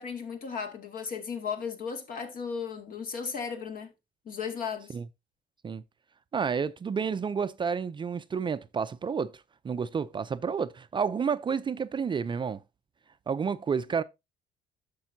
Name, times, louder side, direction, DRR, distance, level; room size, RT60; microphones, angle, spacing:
voice 1, 0.0-3.9 4.3-5.0, left 6 dB, 55° left, 2.1 m, -35 dB
voice 2, 6.3-9.3 9.6-12.6 13.3-14.0, right 6 dB, 30° right, 0.5 m, -30 dB
10.0 x 6.8 x 2.7 m
cardioid pair, 110°, 17 cm